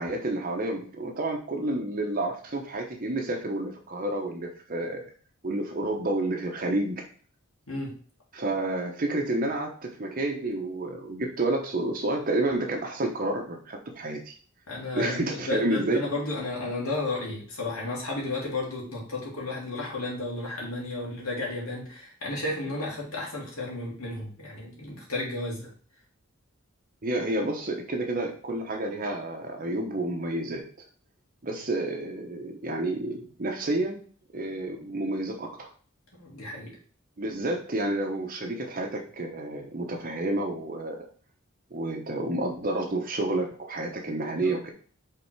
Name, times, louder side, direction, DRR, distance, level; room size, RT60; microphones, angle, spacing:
voice 1, 0.0-5.0 5.4-7.0 8.3-14.3 14.9-16.0 27.0-30.6 31.4-34.0 34.3-35.7 37.2-41.1 41.7-44.7, right 2 dB, 40° right, 2 dB, 0.9 m, -30 dB
voice 2, 14.7-25.7 36.1-36.7 44.4-44.6, left 2 dB, 75° left, -4 dB, 2.4 m, -33 dB
5.5 x 3.8 x 4.5 m, 0.43 s
head